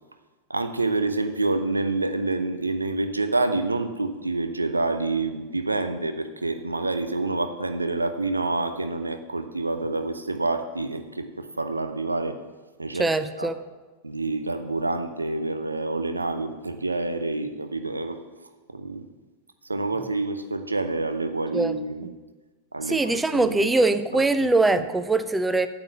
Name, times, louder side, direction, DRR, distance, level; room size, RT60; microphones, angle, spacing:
voice 1, 0.5-12.4 12.8-13.1 13.4-13.5 14.0-18.2 18.7-19.1 19.6-22.1 22.7-23.7 24.1-24.9, right 2 dB, 80° right, 9 dB, 0.7 m, -28 dB
voice 2, 13.0-13.6 21.5-21.8 22.9-25.7, right 2 dB, 10° right, 12 dB, 0.5 m, -22 dB
9.0 x 7.2 x 7.0 m, 1.3 s
figure-of-eight pair, 90°, 0 cm